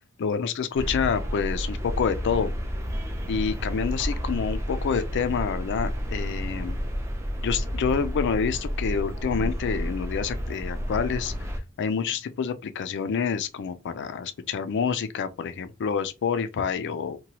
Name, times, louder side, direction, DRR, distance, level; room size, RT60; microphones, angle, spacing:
voice 1, 0.2-2.5 3.3-6.8 7.4-11.3 11.8-17.2, left 6 dB, 55° left, 0.4 m, -28 dB
sound 1, 0.7-11.6, equal, 10° right, 0.5 m, -31 dB
2.9 x 2.2 x 2.8 m
head